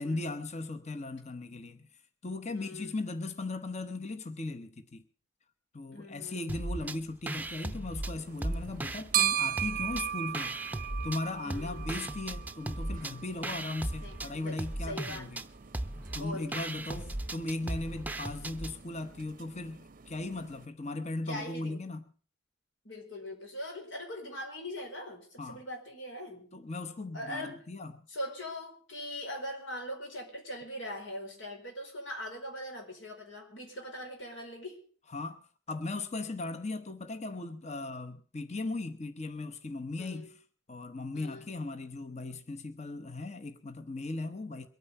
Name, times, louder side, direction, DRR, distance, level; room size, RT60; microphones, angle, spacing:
voice 1, 0.0-5.0 5.7-10.6 11.0-15.4 16.1-22.0 25.4-25.6 26.5-28.1 35.1-40.4 40.7-44.7, left 2 dB, 35° left, 1.0 m, -38 dB
voice 2, 2.5-3.1 5.9-6.5 11.4-11.9 14.0-15.3 16.2-16.7 21.3-21.8 22.8-26.5 27.1-27.7 28.1-34.8 40.0-40.3 41.1-41.5, left 1 dB, 85° left, 4.7 m, -41 dB
sound 1, 6.5-7.0 7.3-9.3 9.6-11.2 11.5-18.7, right 1 dB, 10° right, 0.6 m, -37 dB
sound 2, 8.1-20.7, right 11 dB, 45° right, 0.6 m, -38 dB
22.5 x 9.4 x 5.5 m
head